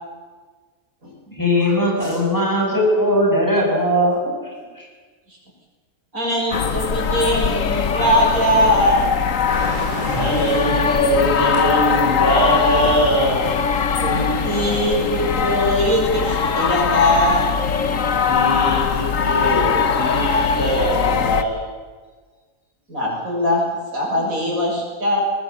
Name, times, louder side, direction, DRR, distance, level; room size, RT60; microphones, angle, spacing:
voice 1, 1.3-4.9, equal, 15° left, -1 dB, 6.6 m, -19 dB
voice 2, 6.1-9.0 14.0-17.5 22.9-23.6 23.9-25.2, equal, 80° right, -2 dB, 7.2 m, -20 dB
sound 1, 6.5-21.4, left 6 dB, 65° left, 1.5 m, -21 dB
sound 2, 9.5-15.9, equal, 35° left, 7.9 m, -33 dB
voice 3, 10.1-13.4 18.3-21.6, equal, 15° right, -8 dB, 7.6 m, -22 dB
21.0 x 19.0 x 8.4 m, 1.4 s
omnidirectional pair, 1.5 m